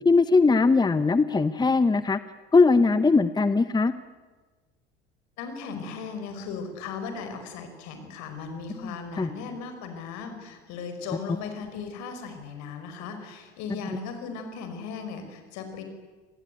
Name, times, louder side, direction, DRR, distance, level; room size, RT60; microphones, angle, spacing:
voice 1, 0.0-2.2 2.5-3.9 8.8-9.3 13.9-14.0, left 4 dB, 15° left, 14 dB, 1.0 m, -20 dB
voice 2, 5.4-15.8, left 5 dB, 55° left, 7 dB, 5.1 m, -37 dB
27.0 x 19.5 x 9.3 m, 1.3 s
figure-of-eight pair, 70°, 32 cm